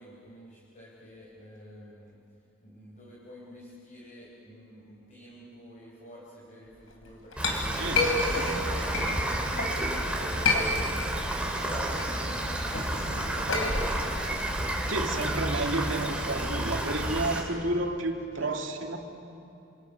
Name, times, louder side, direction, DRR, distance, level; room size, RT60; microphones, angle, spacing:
voice 1, 0.0-2.2 2.6-11.1 11.6-15.8, equal, 40° left, -4 dB, 4.3 m, -48 dB
Chink clink, 6.9-9.8 10.2-11.2 11.6-15.7, left 3 dB, 85° left, 4.2 m, -30 dB
Rain, 7.4-17.4, right 1 dB, 5° right, 3.0 m, -31 dB
voice 2, 7.8-9.1 14.9-19.0, right 2 dB, 75° right, 2 dB, 2.4 m, -31 dB
28.5 x 27.0 x 5.9 m, 2.7 s
head